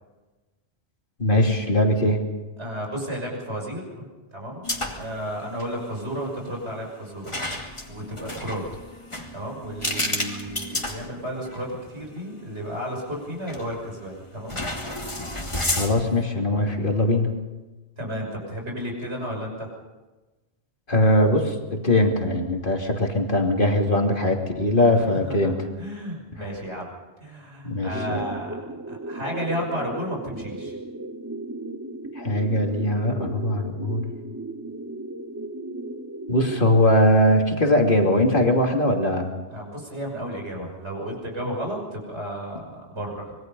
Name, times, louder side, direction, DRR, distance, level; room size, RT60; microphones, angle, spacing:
voice 1, 1.2-2.2 15.8-17.4 20.9-25.6 27.6-28.2 32.2-34.1 36.3-39.3, left 1 dB, 50° left, 2 dB, 3.0 m, -21 dB
voice 2, 2.6-4.1 4.3-8.6 9.3-14.6 16.5-16.7 18.0-19.7 24.9-26.9 27.2-30.8 39.5-43.4, equal, 90° right, 0 dB, 6.4 m, -33 dB
sound 1, 4.6-5.2 5.5-5.7 7.2-11.6 12.2-12.3 13.5-13.9 14.5-16.2, left 1 dB, 25° left, 2.6 m, -31 dB
sound 2, 27.9-36.6, right 2 dB, 15° right, 1.0 m, -36 dB
25.0 x 22.5 x 5.5 m, 1.2 s
omnidirectional pair, 1.1 m